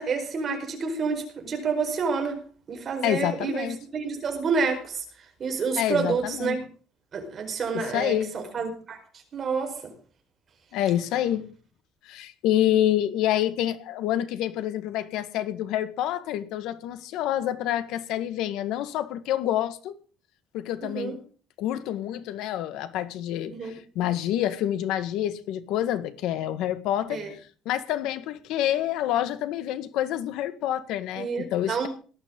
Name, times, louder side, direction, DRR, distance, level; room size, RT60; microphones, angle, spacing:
voice 1, 0.0-2.4 2.7-5.0 5.4-6.6 7.1-9.0 9.3-9.9 20.8-21.1 23.5-23.8 27.1-27.3 31.2-31.9, right 5 dB, 30° right, 4.8 m, -29 dB
voice 2, 3.0-3.8 5.8-6.6 7.7-8.4 10.7-11.5 12.0-20.0 20.5-21.2 21.6-31.9, left 12 dB, 70° left, 1.7 m, -27 dB
18.5 x 12.5 x 3.8 m
cardioid pair, 160°, 0 cm